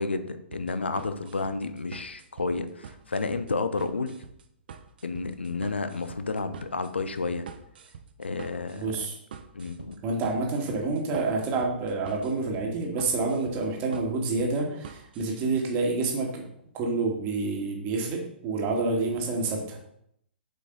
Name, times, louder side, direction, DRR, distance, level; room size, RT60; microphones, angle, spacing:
voice 1, 0.0-4.2 5.0-7.5 8.2-9.1 9.5-10.0, left 3 dB, 75° left, 11 dB, 0.7 m, -31 dB
sound 1, 0.5-15.3, right 7 dB, 55° right, 0.7 m, -46 dB
voice 2, 8.7-9.2 10.0-16.4 16.7-19.8, right 3 dB, 30° right, 0 dB, 1.9 m, -28 dB
7.8 x 5.2 x 3.9 m, 0.72 s
figure-of-eight pair, 115°, 6 cm